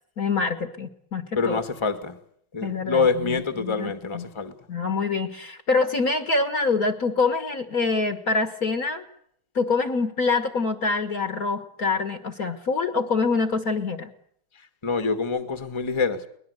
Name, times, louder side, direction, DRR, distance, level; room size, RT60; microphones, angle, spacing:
voice 1, 0.2-1.6 2.6-4.3 4.7-9.0 9.5-14.1, left 4 dB, 45° left, 9 dB, 1.8 m, -25 dB
voice 2, 1.3-2.2 2.5-4.5 14.5-16.3, left 4 dB, 15° left, 10 dB, 1.5 m, -26 dB
23.0 x 20.5 x 8.1 m, 0.68 s
omnidirectional pair, 2.4 m